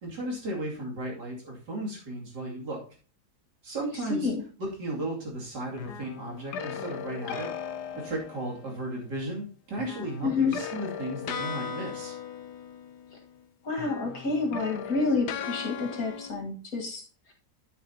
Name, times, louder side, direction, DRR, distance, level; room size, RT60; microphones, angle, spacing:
voice 1, 0.0-2.8 3.6-4.3 4.6-7.5 7.9-12.1, right 1 dB, 85° right, -3 dB, 3.2 m, -35 dB
voice 2, 4.1-4.4 10.2-10.6 13.6-17.0, left 4 dB, 60° left, 1 dB, 2.1 m, -28 dB
sound 1, 5.8-8.9 9.8-13.5 13.7-16.3, left 7 dB, 80° left, 1.3 m, -38 dB
10.0 x 8.0 x 2.8 m, 0.39 s
omnidirectional pair, 1.7 m